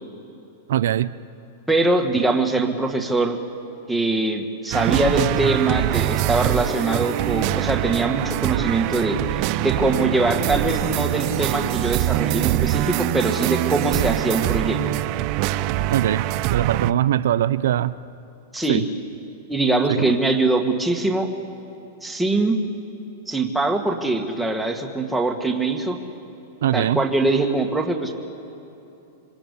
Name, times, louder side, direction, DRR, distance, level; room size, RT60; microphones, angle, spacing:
voice 1, 0.7-1.1 15.9-16.2 16.5-17.9 18.7-18.9 19.9-20.1 26.6-27.0, right 11 dB, 80° right, 14 dB, 0.6 m, -21 dB
voice 2, 1.7-3.4 3.9-14.8 18.5-18.8 19.5-21.3 22.0-22.6 23.3-26.0 26.7-28.1, right 2 dB, 5° right, 2 dB, 1.9 m, -22 dB
sound 1, 4.7-16.9, right 15 dB, 40° right, 0.6 m, -23 dB
27.0 x 24.5 x 8.5 m, 2.9 s
supercardioid pair, 155°, 0 cm